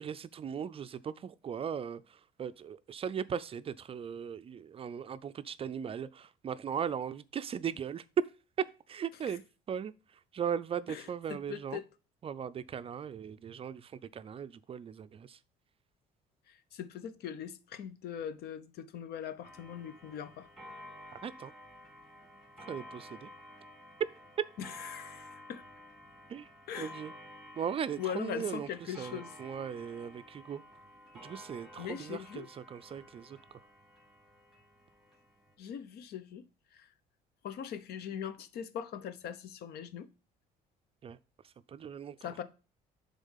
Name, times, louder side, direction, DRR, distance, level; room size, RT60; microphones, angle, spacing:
voice 1, 0.0-8.0 8.6-9.4 9.7-9.9 10.3-11.8 12.2-15.4 21.1-21.5 22.6-23.3 24.0-24.1 26.3-26.5 26.8-27.1 27.6-28.7 29.0-30.6 31.2-33.4 41.0-41.2 41.7-42.3, right 8 dB, 35° right, 0.4 m, -38 dB
voice 2, 11.3-11.8 16.5-20.5 24.6-25.6 26.7-27.0 28.0-29.3 31.8-32.5 35.6-36.5 36.7-36.9 37.4-40.1 42.2-42.4, left 9 dB, 70° left, 0.8 m, -41 dB
Clock, 19.4-35.5, left 1 dB, ahead, 2.3 m, -52 dB
7.1 x 3.8 x 5.5 m
cardioid pair, 110°, 17 cm